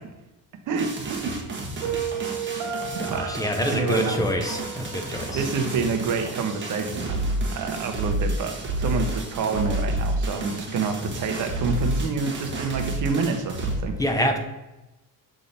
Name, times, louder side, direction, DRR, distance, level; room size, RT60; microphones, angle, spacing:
voice 1, 0.7-1.4 2.9-3.3 3.7-4.3 5.3-7.2 7.5-14.0, right 4 dB, 45° right, 5 dB, 1.0 m, -28 dB
sound 1, 0.8-13.8, right 1 dB, 25° right, 1.3 m, -30 dB
Piano, 1.8-6.8, right 5 dB, 80° right, 1.3 m, -34 dB
voice 2, 3.0-5.4 14.0-14.4, equal, 10° left, 4 dB, 0.6 m, -26 dB
6.5 x 3.8 x 4.1 m, 1.0 s
cardioid pair, 125°, 43 cm